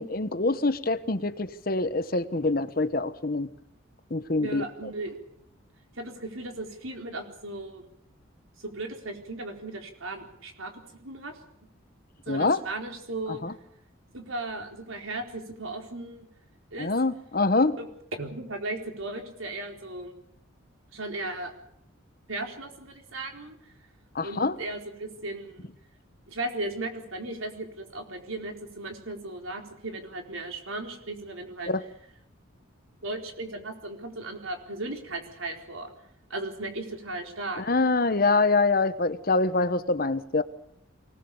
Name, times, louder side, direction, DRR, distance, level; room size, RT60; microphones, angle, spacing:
voice 1, 0.0-3.5 4.1-4.7 12.3-12.6 13.4-13.5 16.8-17.8 24.1-24.6 31.7-31.8 37.6-40.4, left 3 dB, 45° left, 12 dB, 1.0 m, -25 dB
voice 2, 4.4-5.2 6.0-7.8 8.6-11.4 12.3-13.4 14.1-16.3 16.7-16.9 17.8-17.9 18.2-20.1 20.9-21.5 22.3-23.6 24.2-25.7 26.3-31.7 33.0-35.9 36.3-37.6, right 2 dB, 80° right, 3 dB, 4.4 m, -36 dB
24.5 x 18.5 x 7.1 m, 0.74 s
head